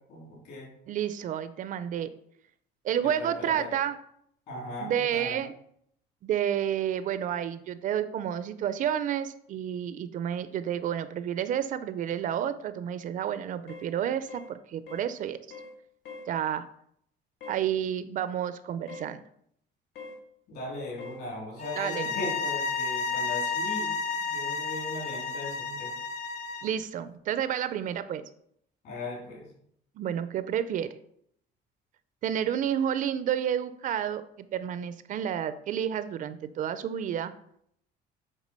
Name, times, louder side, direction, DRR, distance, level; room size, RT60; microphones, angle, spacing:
voice 1, 0.1-0.7 3.0-3.7 4.5-5.4 20.5-25.9 28.8-29.5, left 2 dB, 60° left, -3 dB, 3.4 m, -38 dB
voice 2, 0.9-2.1 2.8-4.0 4.8-5.5 6.2-15.4 16.3-16.7 17.5-19.2 21.8-22.1 26.6-28.2 30.0-31.0 32.2-37.3, right 9 dB, 45° right, 13 dB, 0.4 m, -30 dB
sound 1, 13.7-13.9 14.3-14.5 14.9-15.1 15.5-15.8 16.0-16.3 17.4-17.7 18.9-19.1 20.0-20.2 21.0-21.2, left 3 dB, 90° left, 1.5 m, -43 dB
sound 2, 21.6-26.7, left 5 dB, 40° left, 0.5 m, -32 dB
8.1 x 3.6 x 5.3 m, 0.70 s
cardioid pair, 160°, 18 cm